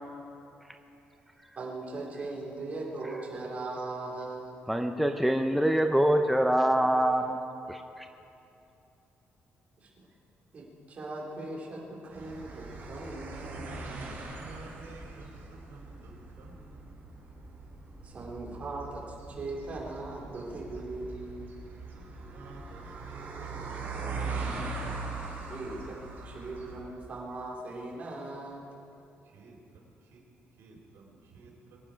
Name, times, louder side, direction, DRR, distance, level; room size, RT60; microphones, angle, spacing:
voice 1, 1.6-4.7 9.8-10.0 10.5-13.6 18.0-21.5 25.5-28.7, right 2 dB, 30° right, -4 dB, 2.7 m, -39 dB
voice 2, 4.7-7.4 7.7-7.8, right 1 dB, ahead, 4 dB, 0.5 m, -24 dB
sound 1, 12.1-26.8, right 3 dB, 50° right, 3.5 m, -41 dB
voice 3, 14.4-17.1 22.0-24.6 29.3-30.2 30.6-31.8, right 4 dB, 90° right, -1 dB, 3.6 m, -52 dB
23.0 x 9.6 x 5.1 m, 2.8 s
cardioid pair, 180°, 4 cm